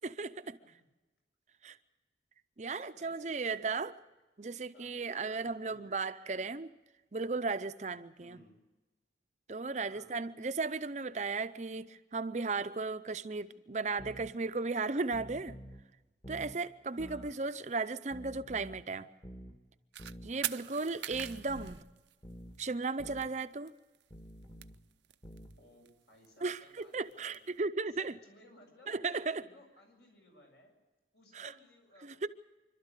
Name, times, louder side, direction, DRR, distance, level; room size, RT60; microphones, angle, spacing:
voice 1, 0.0-0.6 1.6-1.8 2.6-3.9 4.4-6.7 7.1-8.4 9.5-15.6 16.3-19.1 20.2-21.8 22.6-23.7 26.4-28.1 28.9-29.4 31.3-31.5 32.0-32.3, right 4 dB, 40° right, 0.6 m, -35 dB
voice 2, 2.7-4.0 4.7-5.9 8.2-8.6 9.9-10.2 16.9-17.4 20.4-21.1 25.6-27.6 27.9-30.7 31.1-32.3, left 1 dB, 70° left, 7.3 m, -61 dB
sound 1, 14.0-14.3 15.1-15.8 16.2-16.6 17.0-17.3 18.1-18.8 19.2-19.6 20.0-20.3 21.1-21.8 22.2-22.6 23.0-23.3 24.1-24.8 25.2-25.6, equal, 25° left, 1.6 m, -49 dB
sound 2, 19.9-20.1 20.4-22.6 22.9-23.0 23.2-23.3 23.5-24.0 24.3-25.5 25.9-27.4, right 12 dB, 80° right, 0.6 m, -41 dB
26.5 x 12.5 x 8.2 m
head